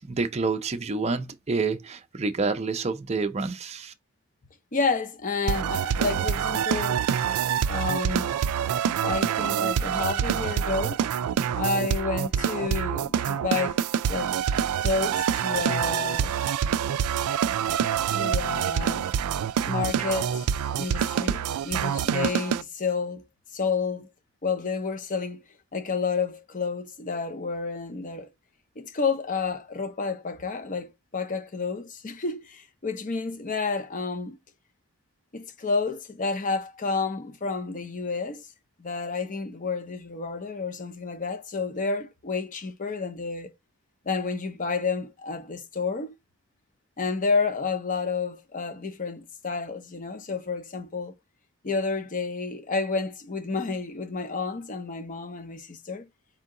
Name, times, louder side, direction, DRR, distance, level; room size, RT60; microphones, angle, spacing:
voice 1, 0.0-3.9, right 4 dB, 30° right, 0.5 m, -28 dB
voice 2, 4.7-7.0 7.7-8.3 9.0-11.0 11.5-14.4 14.8-16.3 18.1-19.1 19.7-20.5 20.8-23.3 23.5-24.1 24.4-25.4 25.7-28.3 28.8-34.4 35.3-38.5 38.8-43.5 44.0-46.2 47.0-51.1 51.6-56.1, left 4 dB, 35° left, 0.6 m, -30 dB
sound 1, 5.5-22.6, right 8 dB, 85° right, 0.3 m, -26 dB
4.4 x 2.8 x 3.7 m
head